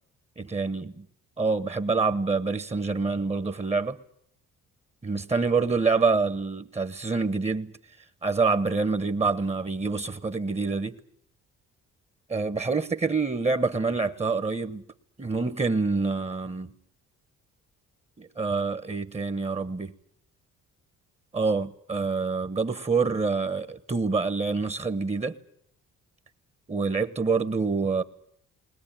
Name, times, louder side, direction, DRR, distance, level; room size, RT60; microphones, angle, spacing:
voice 1, 0.4-1.0 1.4-4.0 5.0-7.7 8.2-11.0 12.3-14.8 15.2-16.7 18.2-19.9 21.3-25.4 26.7-28.0, right 4 dB, 20° right, 1.3 m, -26 dB
20.5 x 20.0 x 9.0 m
cardioid pair, 90°, 30 cm